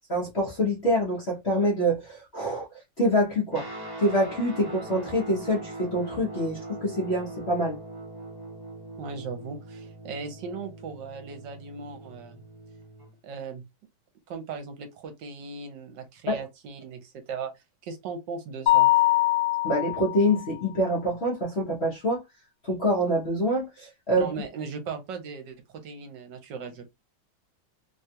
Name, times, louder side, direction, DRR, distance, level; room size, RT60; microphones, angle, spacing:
voice 1, 0.1-2.7 3.0-3.7 4.0-7.8 16.3-16.4 19.6-22.2 22.6-24.3, equal, 45° left, 0.9 m, -25 dB
Guitar, 3.5-13.1, right 2 dB, 25° right, 0.5 m, -41 dB
voice 2, 9.0-12.4 13.2-13.6 14.3-17.5 17.8-18.9 24.2-26.9, right 5 dB, 70° right, 1.3 m, -38 dB
Mallet percussion, 18.7-20.4, left 17 dB, 85° left, 1.4 m, -22 dB
3.3 x 2.3 x 2.7 m
omnidirectional pair, 2.1 m